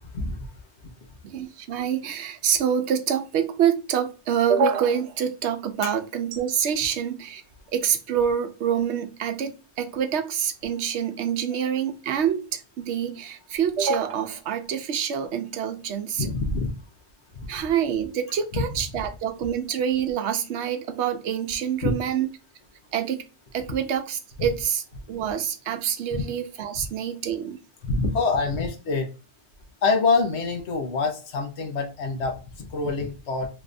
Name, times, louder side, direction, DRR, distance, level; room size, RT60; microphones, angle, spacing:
voice 1, 1.2-7.4 7.7-9.5 9.8-16.3 17.5-22.3 22.9-23.2 23.5-24.8 25.1-27.6, right 8 dB, 80° right, 0.9 m, -26 dB
voice 2, 16.2-16.7 17.4-17.5 18.5-18.6 21.8-21.9 24.4-24.5 26.1-26.2 26.8-26.9 27.8-29.1 29.8-33.5, left 4 dB, 80° left, 1.1 m, -25 dB
3.2 x 2.5 x 3.3 m
omnidirectional pair, 1.1 m